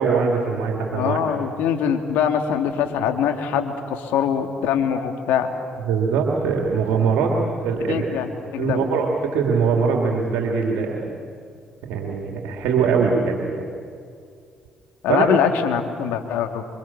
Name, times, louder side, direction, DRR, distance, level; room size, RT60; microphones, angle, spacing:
voice 1, 0.0-1.2 5.9-8.2 8.6-11.1 11.8-13.6 15.1-15.3, right 5 dB, 70° right, 0 dB, 2.9 m, -22 dB
voice 2, 0.9-5.5 7.9-8.8 15.0-16.6, left 8 dB, 75° left, 5 dB, 2.3 m, -23 dB
27.0 x 25.5 x 7.4 m, 2.3 s
hypercardioid pair, 50°, 3 cm